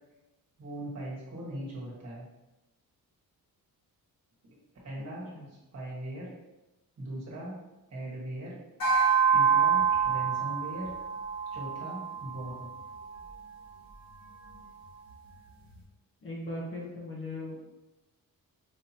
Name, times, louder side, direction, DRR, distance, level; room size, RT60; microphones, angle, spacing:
voice 1, 0.6-2.3 4.4-4.5 4.8-5.3 5.7-6.3 7.0-7.6 7.9-8.6 9.3-10.9 11.5-12.7, right 1 dB, 45° right, -5 dB, 1.4 m, -39 dB
sound 1, 8.8-13.4, right 6 dB, 70° left, 1.4 m, -27 dB
voice 2, 16.2-17.7, left 1 dB, 35° left, -3 dB, 0.8 m, -38 dB
5.0 x 2.8 x 2.8 m, 1.0 s
wide cardioid pair, 170°, 37 cm